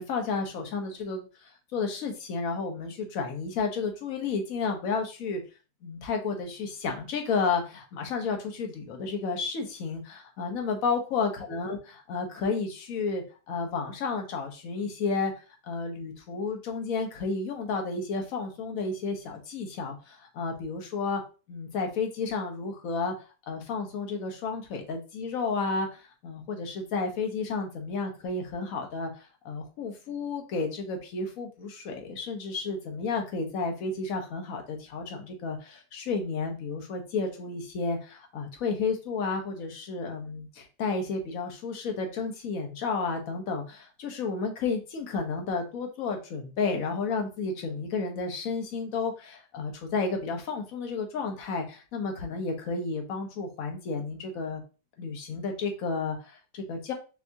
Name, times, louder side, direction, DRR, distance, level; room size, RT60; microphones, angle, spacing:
voice 1, 0.0-5.4 5.8-21.2 21.5-23.1 23.5-54.6 55.0-56.9, left 4 dB, 55° left, 4 dB, 1.3 m, -32 dB
4.6 x 3.4 x 2.7 m, 0.32 s
omnidirectional pair, 1.9 m